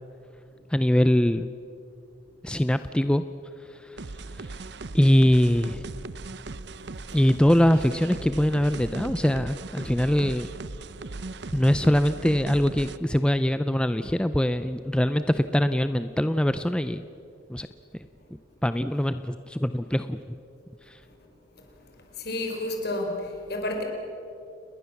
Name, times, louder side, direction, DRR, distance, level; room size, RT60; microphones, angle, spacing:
voice 1, 0.7-1.5 2.4-3.2 3.6-4.0 4.3-4.7 4.9-5.8 7.1-10.5 11.5-17.0 17.5-17.7 17.9-18.1 18.6-20.2 20.8-21.0, equal, 5° left, 11 dB, 0.5 m, -23 dB
sound 1, 4.0-13.0, right 3 dB, 60° right, 0.8 m, -38 dB
voice 2, 22.2-23.8, left 1 dB, 55° left, 2 dB, 5.1 m, -30 dB
29.5 x 20.5 x 7.2 m, 2.6 s
head